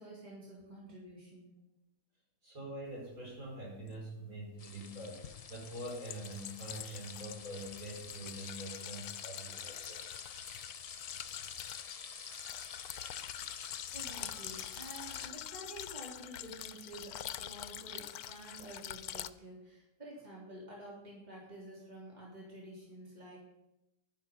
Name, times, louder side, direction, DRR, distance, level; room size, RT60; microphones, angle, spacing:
voice 1, 0.0-1.5 13.9-23.4, right 1 dB, 30° right, -5 dB, 3.7 m, -50 dB
voice 2, 2.4-10.0, right 1 dB, 70° right, -4 dB, 5.5 m, -45 dB
sound 1, 3.9-4.0 5.2-19.3, left 12 dB, 90° left, 1.1 m, -45 dB
sound 2, 4.6-15.3, left 6 dB, 60° left, 0.3 m, -49 dB
11.0 x 11.0 x 5.5 m, 0.89 s
omnidirectional pair, 1.6 m